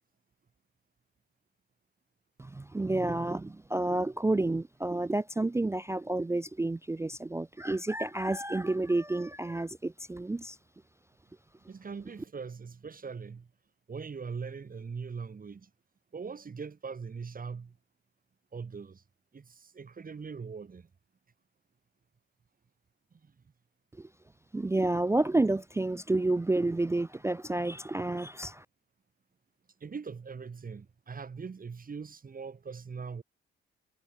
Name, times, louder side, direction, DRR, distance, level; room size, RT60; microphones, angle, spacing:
voice 1, 2.4-10.6 24.0-24.1 24.5-28.6, right 2 dB, 10° right, 0.4 m, -30 dB
voice 2, 11.7-13.5 13.9-15.7 16.1-17.8 18.5-19.0 19.3-20.9 23.2-23.3 29.8-33.2, right 5 dB, 25° right, 1.2 m, -41 dB
figure-of-eight pair, 45°, 33 cm